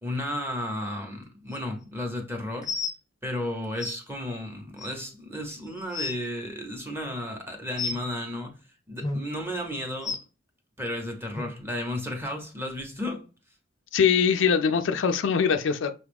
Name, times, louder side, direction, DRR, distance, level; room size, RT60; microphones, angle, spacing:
voice 1, 0.0-2.7 3.2-8.5 8.9-10.2 10.8-13.3, left 1 dB, 10° right, 0.8 m, -33 dB
sound 1, 1.5-1.6 2.6-2.9 3.8-3.9 4.8-4.9 5.5-5.6 5.8-6.1 7.8-8.0 9.0-9.2 10.0-10.2 11.3-11.4 12.2-12.3 13.0-13.1, left 4 dB, 20° left, 0.6 m, -31 dB
voice 2, 13.9-15.9, left 6 dB, 70° left, 0.4 m, -22 dB
5.8 x 2.3 x 3.4 m
head